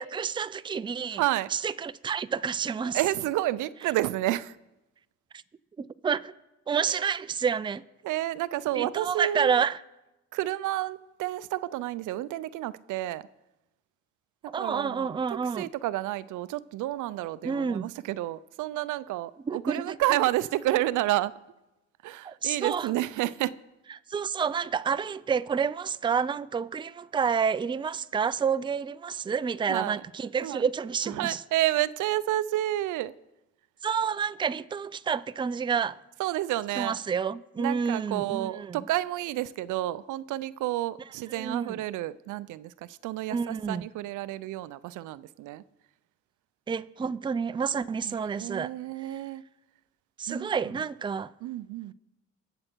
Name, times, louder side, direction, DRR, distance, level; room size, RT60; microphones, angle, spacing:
voice 1, 0.0-1.2 1.5-3.0 5.8-6.3 6.7-7.8 8.7-9.8 14.5-15.7 17.4-17.9 19.4-20.0 22.2-22.9 24.1-31.4 33.8-36.0 36.8-38.8 41.3-41.8 43.3-43.8 46.7-48.7 49.0-49.2 50.2-51.3, right 6 dB, 15° right, 0.4 m, -29 dB
voice 2, 1.2-1.5 2.8-4.6 6.9-7.1 8.0-9.6 10.3-13.2 14.6-15.2 15.6-21.3 22.0-23.5 29.7-30.0 30.4-30.6 31.1-33.1 36.2-37.0 37.6-45.6 48.0-49.4 50.3-50.5 51.4-51.9, right 15 dB, 85° right, 0.5 m, -30 dB
22.0 x 7.7 x 4.5 m
cardioid pair, 90°, 30 cm